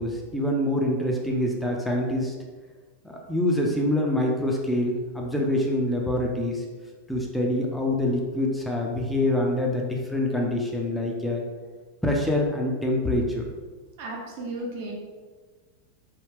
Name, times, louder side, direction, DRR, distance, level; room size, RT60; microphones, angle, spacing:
voice 1, 0.0-2.3 3.0-6.7 7.1-11.4 12.0-13.5, left 1 dB, 5° left, -1 dB, 0.4 m, -25 dB
voice 2, 14.0-14.9, right 2 dB, 50° right, -2 dB, 0.8 m, -34 dB
3.3 x 2.3 x 3.3 m, 1.4 s
figure-of-eight pair, 90°, 0 cm